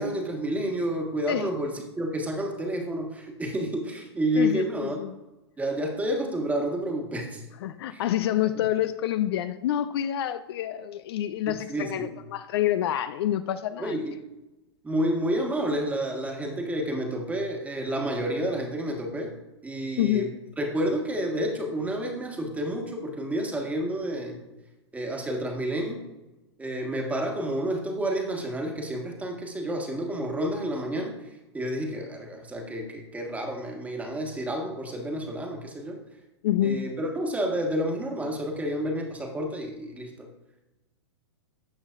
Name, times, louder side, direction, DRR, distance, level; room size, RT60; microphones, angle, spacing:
voice 1, 0.0-5.0 5.6-7.4 7.9-8.0 8.6-8.7 11.5-12.1 13.8-14.2 14.8-19.3 19.6-20.3 20.6-24.4 24.9-26.0 26.6-31.1 31.5-36.0 36.6-40.3, right 1 dB, 10° right, 2 dB, 1.4 m, -30 dB
voice 2, 4.4-5.1 7.6-14.2 20.0-20.3 36.4-36.8, left 12 dB, 60° left, 12 dB, 0.5 m, -27 dB
16.0 x 5.5 x 2.5 m, 1.1 s
hypercardioid pair, 120°, 15 cm